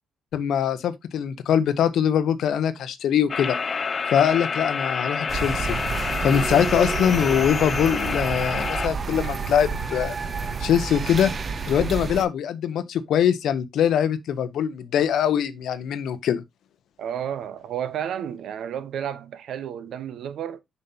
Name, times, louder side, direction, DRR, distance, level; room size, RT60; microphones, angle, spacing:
voice 1, 0.3-3.6 4.1-5.8 6.2-10.2 10.6-11.3 11.7-16.4, left 9 dB, 75° left, 0.7 m, -22 dB
sound 1, 3.3-8.9, left 5 dB, 40° left, 0.5 m, -28 dB
sound 2, 5.3-12.2, right 5 dB, 40° right, 0.7 m, -29 dB
voice 2, 17.0-20.6, right 9 dB, 70° right, 0.8 m, -31 dB
6.8 x 5.5 x 2.7 m
cardioid pair, 90°, 0 cm